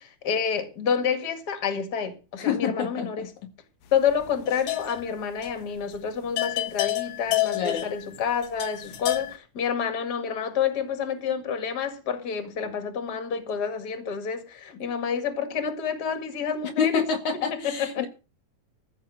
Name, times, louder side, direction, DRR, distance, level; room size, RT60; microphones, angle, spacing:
voice 1, 0.0-3.3 3.9-17.0 17.6-18.1, left 7 dB, 35° left, 2.1 m, -28 dB
voice 2, 2.4-3.5 7.6-7.9 16.8-18.1, left 7 dB, 70° left, 2.3 m, -27 dB
sound 1, 4.1-5.2 5.4-5.6 6.0-6.1 6.4-9.4, left 16 dB, 85° left, 2.8 m, -29 dB
14.5 x 6.4 x 7.7 m
omnidirectional pair, 3.8 m